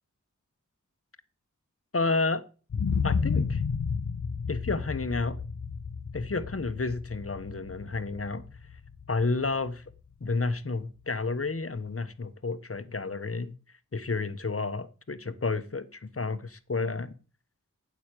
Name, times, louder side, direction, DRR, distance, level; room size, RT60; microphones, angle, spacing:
voice 1, 1.9-2.4 3.0-3.6 4.5-5.4 6.1-8.4 9.1-9.8 10.2-13.5 13.9-17.1, left 3 dB, 45° left, 1.3 m, -30 dB
sound 1, 2.7-10.6 11.0-11.1, left 5 dB, 60° left, 0.9 m, -32 dB
9.5 x 8.3 x 9.2 m
cardioid pair, 45°, 32 cm